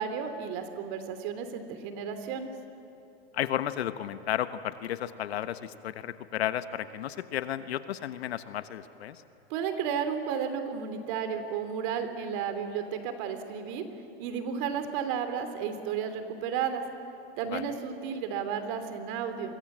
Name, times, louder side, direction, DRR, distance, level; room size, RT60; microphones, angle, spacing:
voice 1, 0.0-2.5 9.5-13.8 14.2-16.8 17.4-19.6, right 7 dB, 50° right, 8 dB, 3.1 m, -33 dB
voice 2, 3.3-9.2 17.5-17.6, left 11 dB, 85° left, 11 dB, 1.3 m, -33 dB
30.0 x 24.0 x 7.5 m, 2.9 s
supercardioid pair, 135°, 31 cm